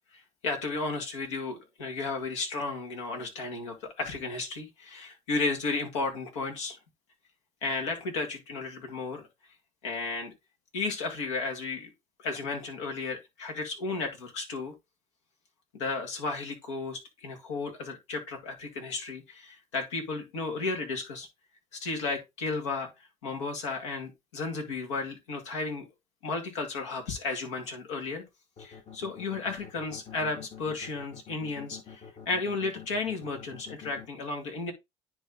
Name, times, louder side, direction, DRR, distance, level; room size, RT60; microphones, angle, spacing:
voice 1, 0.1-6.8 7.6-9.3 9.8-10.3 10.7-11.9 12.2-14.7 15.7-21.3 21.7-25.9 26.2-28.2 28.6-34.7, left 3 dB, 90° left, 2.2 m, -34 dB
sound 1, 28.6-34.1, left 8 dB, 55° left, 1.9 m, -46 dB
10.0 x 3.5 x 3.8 m
hypercardioid pair, 65°, 15 cm